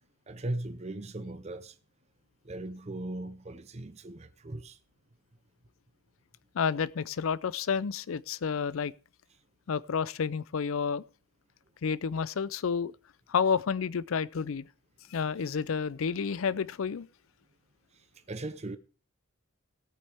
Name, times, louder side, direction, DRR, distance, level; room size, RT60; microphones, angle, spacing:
voice 1, 0.3-1.7 2.4-4.8 18.3-18.8, right 2 dB, 30° right, 0.7 m, -38 dB
voice 2, 6.5-8.9 9.7-11.0 11.8-12.9 13.3-14.7 15.1-17.1, left 6 dB, 80° left, 0.5 m, -30 dB
16.5 x 8.6 x 3.4 m
head